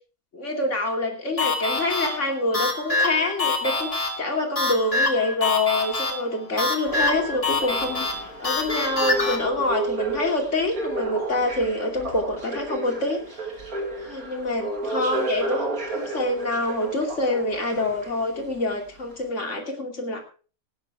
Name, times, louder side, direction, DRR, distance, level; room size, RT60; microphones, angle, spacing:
voice 1, 0.3-13.2 14.0-20.2, left 2 dB, 50° left, 2 dB, 3.1 m, -26 dB
sound 1, 1.4-9.4, left 2 dB, 25° left, 2.1 m, -26 dB
sound 2, 6.9-18.5 19.1-19.2, right 2 dB, 75° right, 3.1 m, -32 dB
18.5 x 9.6 x 3.5 m, 0.37 s
omnidirectional pair, 1.5 m